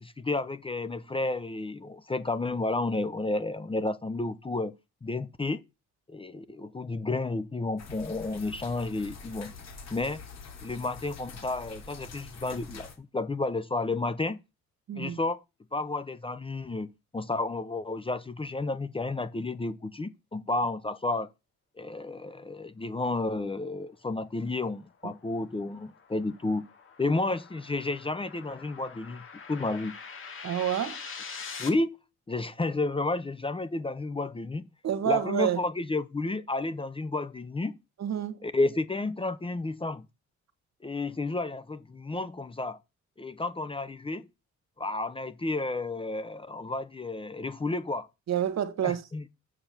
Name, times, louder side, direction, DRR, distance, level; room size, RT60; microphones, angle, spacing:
voice 1, 0.0-4.8 5.0-5.6 6.1-9.5 9.9-10.2 10.6-14.4 14.9-15.4 15.7-21.3 21.8-26.7 27.0-30.0 31.6-31.9 32.3-34.7 35.0-37.8 38.4-40.1 40.8-42.8 43.2-44.3 44.8-48.1 48.8-49.3, left 2 dB, 20° left, 0.7 m, -31 dB
sound 1, 7.8-13.0, left 4 dB, 60° left, 3.0 m, -45 dB
voice 2, 14.9-15.2 30.4-31.0 34.8-35.6 38.0-38.4 48.3-49.0, right 10 dB, 60° right, 1.4 m, -28 dB
sound 2, 24.8-31.7, left 5 dB, 45° left, 2.0 m, -44 dB
6.9 x 6.7 x 5.8 m
cardioid pair, 90°, 30 cm